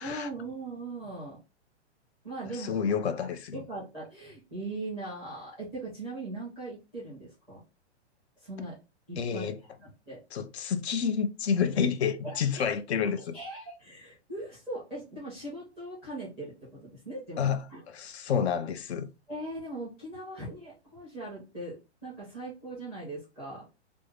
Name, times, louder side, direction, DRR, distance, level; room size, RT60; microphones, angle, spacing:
voice 1, 0.0-1.4 2.2-3.3 3.5-7.6 8.4-8.8 9.1-9.5 9.8-10.2 12.2-12.7 13.2-17.4 17.7-17.8 19.3-23.7, right 2 dB, 5° left, 0.5 m, -40 dB
voice 2, 2.5-3.6 9.2-9.6 10.3-13.4 17.4-19.1, left 7 dB, 65° left, 0.5 m, -29 dB
3.4 x 2.0 x 3.1 m
hypercardioid pair, 180°, 35 cm